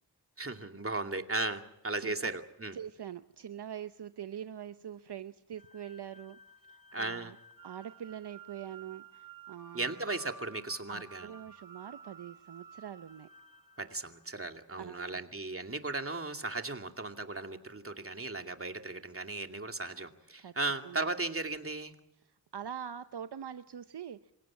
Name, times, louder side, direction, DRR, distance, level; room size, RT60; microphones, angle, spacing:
voice 1, 0.4-2.8 6.9-7.3 9.7-11.3 13.8-21.9, right 2 dB, 30° right, 5 dB, 2.5 m, -36 dB
voice 2, 2.0-2.3 2.7-6.4 6.7-7.4 7.6-9.9 10.9-13.3 14.8-15.2 20.4-20.6 20.8-21.0 22.2-24.3, right 9 dB, 70° right, 11 dB, 0.8 m, -44 dB
sound 1, 5.6-14.7, right 4 dB, 50° right, 1.9 m, -54 dB
27.0 x 17.0 x 8.8 m, 0.80 s
cardioid pair, 45°, 42 cm